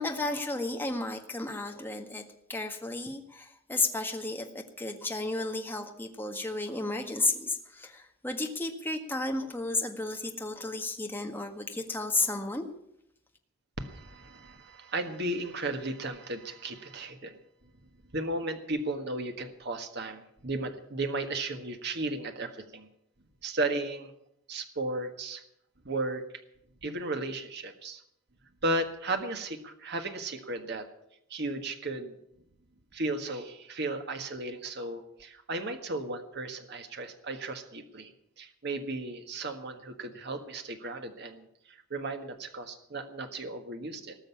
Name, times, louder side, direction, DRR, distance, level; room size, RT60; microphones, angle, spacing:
voice 1, 0.0-2.2 2.5-12.6, left 2 dB, 10° left, 3 dB, 1.6 m, -33 dB
voice 2, 13.8-17.4 18.1-22.9 23.4-24.1 24.5-25.4 25.8-26.2 26.8-28.0 28.6-30.9 31.3-32.1 32.9-38.1 38.4-44.2, right 2 dB, 55° right, 6 dB, 1.6 m, -35 dB
19.5 x 6.6 x 9.8 m, 0.76 s
head